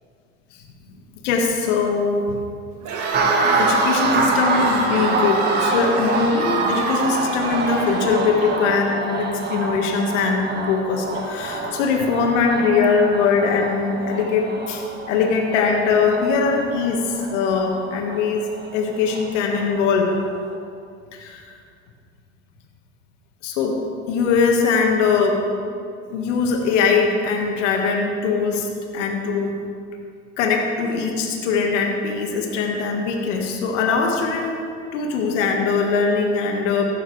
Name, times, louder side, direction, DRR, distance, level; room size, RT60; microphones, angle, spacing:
voice 1, 1.2-2.4 3.6-18.4 18.7-20.1 21.1-21.4 23.4-23.8 24.1-25.4 26.1-28.7 28.9-29.5 30.4-34.6 34.9-36.8, left 5 dB, 80° left, 1 dB, 1.8 m, -21 dB
Crowd, 2.8-9.0, right 4 dB, 55° right, 2.1 m, -27 dB
sound 1, 3.1-19.8 20.1-20.5, right 3 dB, 30° right, 1.6 m, -26 dB
15.5 x 12.0 x 3.3 m, 2.3 s
supercardioid pair, 95°, 36 cm